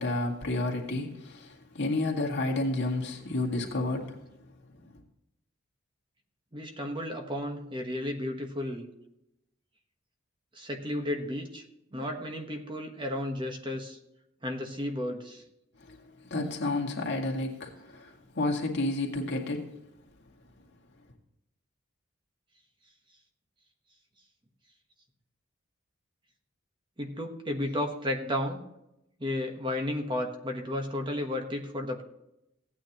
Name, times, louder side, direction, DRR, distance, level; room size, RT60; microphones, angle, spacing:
voice 1, 0.0-4.2 15.8-16.0 16.2-19.7, left 2 dB, 60° left, 1 dB, 2.0 m, -31 dB
voice 2, 6.5-8.9 10.5-11.6 11.9-14.0 14.4-15.4 27.0-28.6 29.2-32.0, left 1 dB, 25° right, 4 dB, 1.2 m, -33 dB
16.0 x 9.2 x 3.0 m, 0.83 s
head